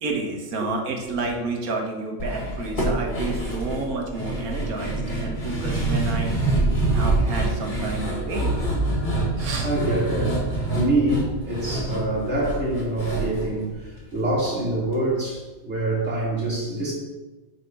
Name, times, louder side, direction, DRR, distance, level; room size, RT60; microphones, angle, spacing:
voice 1, 0.0-6.4 6.9-8.5 9.4-9.7, right 3 dB, 85° right, 2 dB, 1.6 m, -30 dB
voice 2, 1.1-1.5 9.6-16.9, right 1 dB, 50° right, -5 dB, 2.6 m, -26 dB
sound 1, 2.2-14.5 14.8-14.9 15.2-15.3, right 2 dB, 35° left, 2.0 m, -26 dB
6.5 x 4.3 x 5.9 m, 1.2 s
omnidirectional pair, 1.5 m